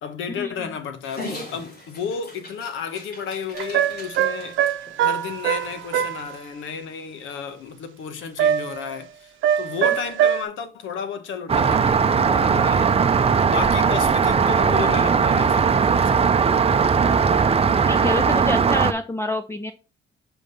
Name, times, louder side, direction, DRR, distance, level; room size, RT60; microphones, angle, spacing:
voice 1, 0.0-4.6 5.0-13.0 13.5-16.3, left 6 dB, 80° left, 1.0 m, -33 dB
Dog, 1.0-6.4, left 2 dB, 55° left, 3.4 m, -40 dB
sound 1, 3.5-6.2 8.4-8.9 9.4-10.4, right 10 dB, 80° right, 0.8 m, -22 dB
Rain, 11.5-18.9, right 6 dB, 30° right, 0.6 m, -19 dB
voice 2, 17.9-19.7, left 2 dB, 10° left, 0.5 m, -27 dB
6.1 x 5.2 x 4.0 m
cardioid pair, 90°, 20 cm